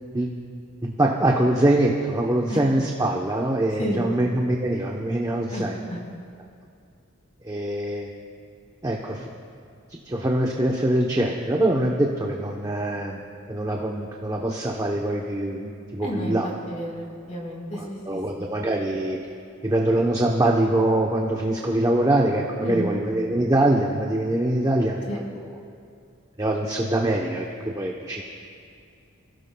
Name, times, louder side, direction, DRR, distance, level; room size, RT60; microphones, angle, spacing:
voice 1, 0.8-5.8 7.4-8.1 8.8-9.3 10.1-13.2 13.5-16.5 17.8-19.2 19.6-25.2 26.4-28.2, right 1 dB, 20° right, 0 dB, 0.8 m, -23 dB
voice 2, 16.0-18.5 22.6-23.0 25.1-25.2, equal, 35° left, -2 dB, 4.2 m, -31 dB
26.5 x 16.5 x 2.3 m, 2.4 s
head